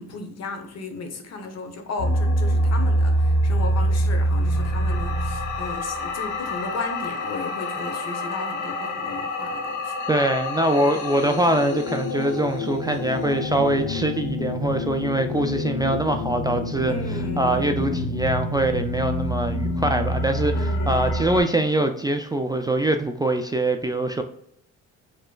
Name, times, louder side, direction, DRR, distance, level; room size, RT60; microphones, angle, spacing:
voice 1, 0.0-9.9 16.9-18.1 20.6-21.2, left 3 dB, 60° left, 5 dB, 1.0 m, -35 dB
sound 1, 2.0-21.4, equal, 85° left, 0.9 m, -26 dB
voice 2, 10.1-16.9 17.4-24.2, right 1 dB, 15° right, 5 dB, 0.3 m, -23 dB
5.2 x 3.0 x 2.3 m, 0.72 s
cardioid pair, 90°, 30 cm